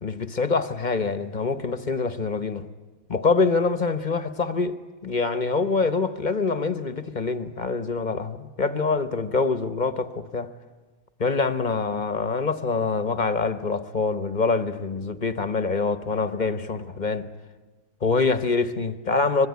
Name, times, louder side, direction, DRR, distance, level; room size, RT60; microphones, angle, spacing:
voice 1, 0.0-2.7 3.1-4.8 5.0-10.5 11.2-17.3 18.0-19.5, left 4 dB, 35° left, 1.0 m, -25 dB
26.0 x 22.0 x 9.5 m
omnidirectional pair, 1.5 m